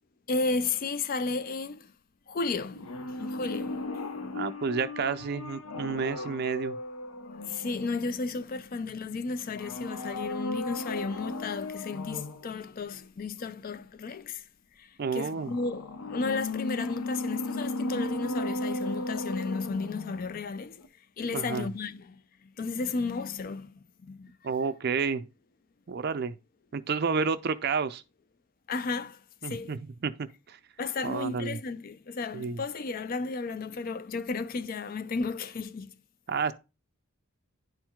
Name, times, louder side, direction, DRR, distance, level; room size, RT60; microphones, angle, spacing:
voice 1, 0.3-1.9 2.3-3.9 4.2-4.4 7.2-14.4 14.8-20.8 21.2-24.4 28.7-29.8 30.8-36.0, left 4 dB, 40° left, 0.4 m, -34 dB
sound 1, 2.7-8.4 9.5-12.5 15.3-20.5 20.8-20.9, left 2 dB, 75° left, 0.7 m, -35 dB
voice 2, 4.3-6.8 15.0-15.5 21.3-21.7 24.4-25.3 25.9-26.3 26.7-28.0 29.4-30.6 31.0-31.6 32.3-32.6 36.3-36.5, right 5 dB, 45° right, 0.4 m, -30 dB
10.5 x 4.5 x 2.2 m
head